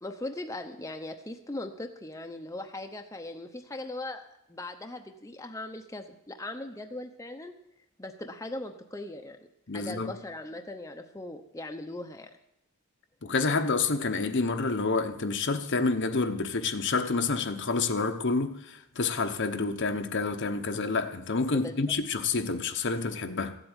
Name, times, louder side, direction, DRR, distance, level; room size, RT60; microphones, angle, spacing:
voice 1, 0.0-7.5 8.0-9.4 9.7-12.3 21.5-21.8, left 2 dB, 15° left, 0.8 m, -39 dB
voice 2, 9.7-10.2 13.2-23.6, left 4 dB, 55° left, 1.0 m, -28 dB
15.0 x 8.0 x 9.0 m
head